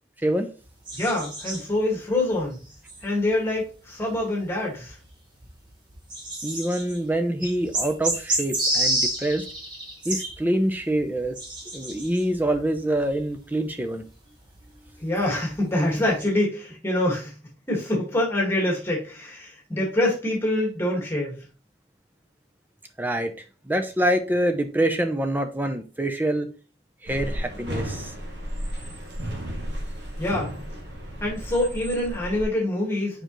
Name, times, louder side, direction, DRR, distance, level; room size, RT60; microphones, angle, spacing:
sound 1, 0.6-3.6 3.9-16.2, right 1 dB, 25° right, 1.4 m, -31 dB
voice 1, 0.9-2.6 3.0-5.0 15.0-17.4 17.7-21.4 30.2-30.5 31.2-33.2, left 1 dB, 15° left, 1.9 m, -25 dB
voice 2, 6.4-9.5 10.0-11.4 11.7-14.0 23.0-23.3 23.6-26.5 27.0-28.1, right 1 dB, 10° right, 0.6 m, -25 dB
sound 2, 27.1-32.4, equal, 65° right, 2.0 m, -33 dB
6.8 x 5.1 x 3.1 m
head